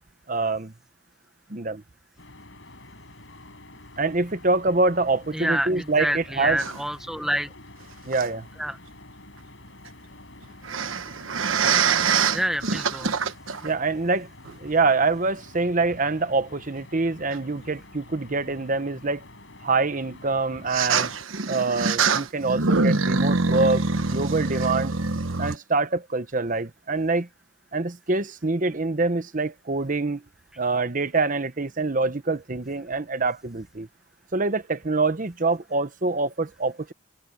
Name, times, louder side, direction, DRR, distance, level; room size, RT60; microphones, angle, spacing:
voice 1, 0.3-0.7 1.5-1.8 4.0-6.6 8.0-8.5 13.6-14.3 14.6-19.2 19.6-21.1 21.5-23.8 24.1-25.0 25.4-27.3 27.7-30.2 30.6-33.9 34.3-36.9, right 3 dB, 40° right, 0.9 m, -25 dB
sound 1, 2.2-21.2, left 2 dB, 65° left, 7.8 m, -47 dB
voice 2, 5.3-7.5 8.6-8.8 12.3-13.1, equal, 5° right, 0.9 m, -27 dB
sound 2, 6.6-6.8 8.1-8.3 10.6-13.7 14.5-14.6 17.3-17.4 20.7-25.6, right 4 dB, 85° right, 1.2 m, -24 dB
head